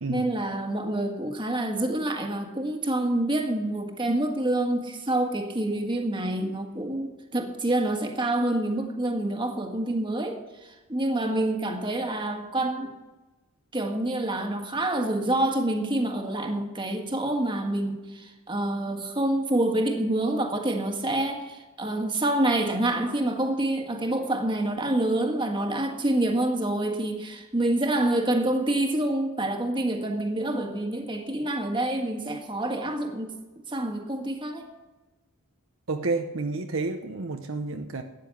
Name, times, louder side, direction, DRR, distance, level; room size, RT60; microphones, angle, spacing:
voice 1, 0.1-12.9 13.7-33.3 33.7-34.7, right 1 dB, 20° right, 3 dB, 1.7 m, -27 dB
voice 2, 35.9-38.0, right 3 dB, 60° right, 6 dB, 0.8 m, -30 dB
13.0 x 9.7 x 7.1 m, 1.1 s
head